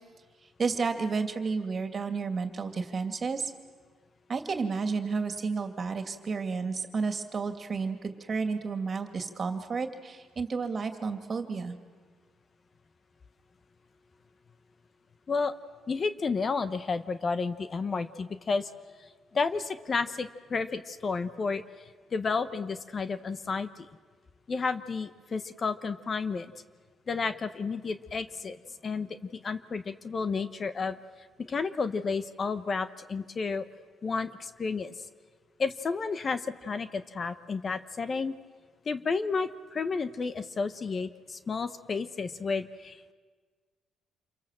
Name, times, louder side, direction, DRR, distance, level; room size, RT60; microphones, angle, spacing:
voice 1, 0.6-3.5 4.3-11.7, right 4 dB, 40° right, 7 dB, 2.5 m, -31 dB
voice 2, 15.9-18.7 19.3-21.6 22.1-23.9 24.5-26.5 27.1-28.6 28.8-31.0 31.4-33.7 34.0-34.9 35.6-38.3 38.9-43.1, left 4 dB, 40° left, 12 dB, 1.1 m, -31 dB
27.5 x 23.5 x 7.6 m, 1.5 s
cardioid pair, 90°, 0 cm